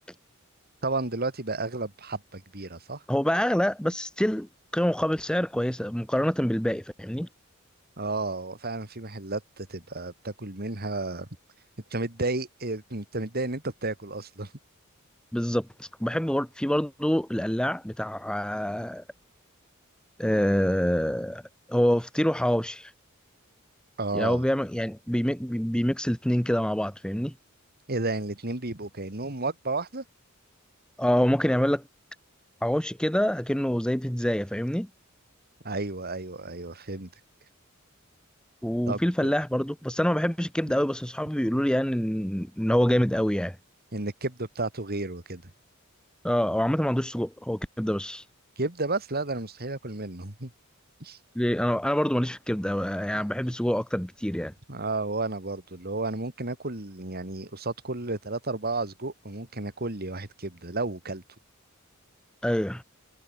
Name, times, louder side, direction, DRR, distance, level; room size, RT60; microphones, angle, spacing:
voice 1, 0.8-3.0 8.0-11.3 11.9-14.5 24.0-24.4 27.9-30.0 35.6-37.1 38.9-39.3 43.9-45.5 48.6-50.5 51.0-51.2 53.2-53.3 54.7-61.2, right 2 dB, 45° right, 3.3 m, -32 dB
voice 2, 3.1-4.5 4.7-7.3 15.3-19.0 20.2-21.4 21.7-22.9 24.1-27.3 31.0-31.8 32.6-34.9 38.6-43.6 46.2-48.2 51.3-54.5 62.4-62.8, equal, 5° left, 1.0 m, -26 dB
head